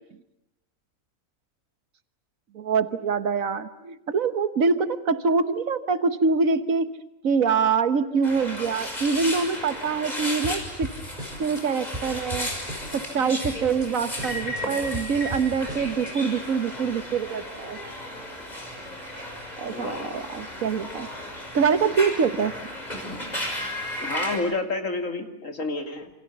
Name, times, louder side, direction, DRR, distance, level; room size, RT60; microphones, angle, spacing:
voice 1, 2.5-6.9 7.2-10.9 11.4-12.5 12.9-17.8 19.6-21.1 21.5-22.5, right 5 dB, 80° right, 12 dB, 1.6 m, -24 dB
sound 1, 8.2-24.4, left 1 dB, 30° left, 6.4 m, -34 dB
basic beat, 10.4-11.6 11.9-13.1 13.4-13.9 14.2-16.1, right 1 dB, 30° right, 6.6 m, -37 dB
voice 2, 19.7-20.2 24.0-26.1, left 3 dB, 70° left, 6 dB, 3.3 m, -30 dB
28.5 x 27.5 x 6.9 m, 0.84 s
omnidirectional pair, 1.4 m